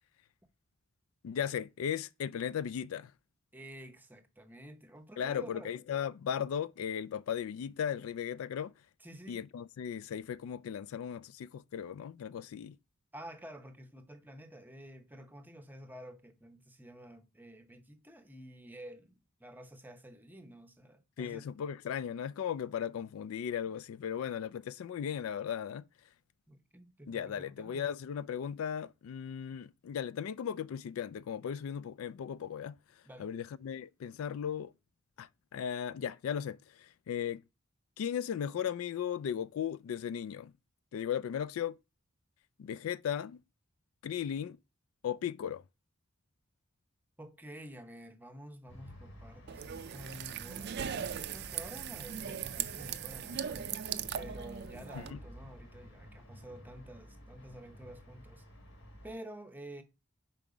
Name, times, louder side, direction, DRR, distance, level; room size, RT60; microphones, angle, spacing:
voice 1, 1.2-3.1 5.2-8.7 9.3-12.8 21.2-25.8 27.1-32.8 33.2-34.7 35.2-37.4 38.0-40.5 40.9-41.8 42.6-43.4 44.0-44.6 45.0-45.6 54.9-55.2, left 8 dB, 80° left, 0.3 m, -36 dB
voice 2, 3.5-5.8 9.0-9.4 13.1-21.5 26.5-27.8 33.0-33.3 47.2-58.4 59.0-59.8, right 1 dB, 10° right, 0.7 m, -50 dB
sound 1, 48.7-59.1, equal, 60° left, 1.5 m, -52 dB
sound 2, 49.5-55.1, right 9 dB, 50° right, 0.4 m, -39 dB
5.4 x 4.4 x 4.8 m
head